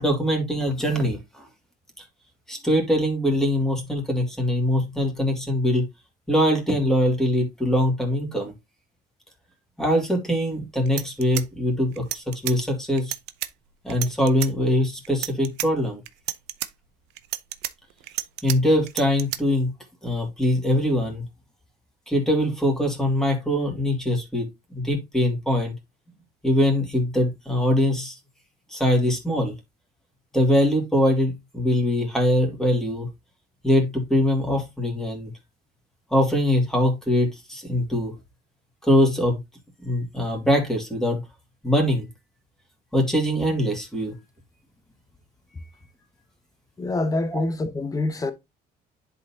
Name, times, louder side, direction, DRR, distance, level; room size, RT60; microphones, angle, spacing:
voice 1, 0.0-1.4 2.0-2.1 2.5-5.9 6.3-8.5 9.8-13.1 13.8-16.0 18.4-19.7 20.0-21.2 22.1-24.5 24.7-25.7 26.4-28.2 28.7-29.5 30.3-33.1 33.6-35.3 36.1-38.1 38.8-39.4 39.8-41.2 41.6-42.1 42.9-44.1 47.3-47.4, left 1 dB, 5° left, 2.4 m, -22 dB
sound 1, 10.5-10.6 10.9-12.6 13.0-13.5 13.9-14.5 15.0-15.7 16.1-16.7 17.2-18.6 18.9-19.4, right 15 dB, 85° right, 0.6 m, -31 dB
voice 2, 46.8-48.3, left 2 dB, 20° left, 1.1 m, -26 dB
10.5 x 4.1 x 2.8 m
cardioid pair, 110°, 17 cm